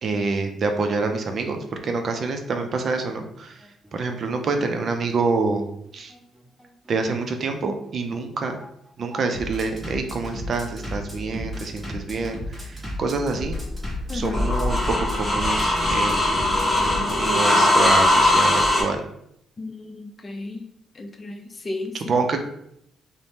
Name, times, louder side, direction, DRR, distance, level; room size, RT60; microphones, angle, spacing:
voice 1, 0.0-3.6 3.9-5.7 5.9-6.1 6.9-8.6 9.0-13.5 14.1-16.3 17.2-19.0 21.9-22.4, right 4 dB, 50° right, 5 dB, 0.4 m, -26 dB
Bass drum, 1.6-17.3, left 1 dB, 10° right, 1.0 m, -36 dB
sound 1, 13.4-18.8, left 1 dB, 10° left, 1.0 m, -20 dB
voice 2, 14.1-14.4 19.6-20.6 20.9-22.1, left 2 dB, 30° left, 5 dB, 0.4 m, -33 dB
2.7 x 2.0 x 3.3 m, 0.73 s
cardioid pair, 90°, 0 cm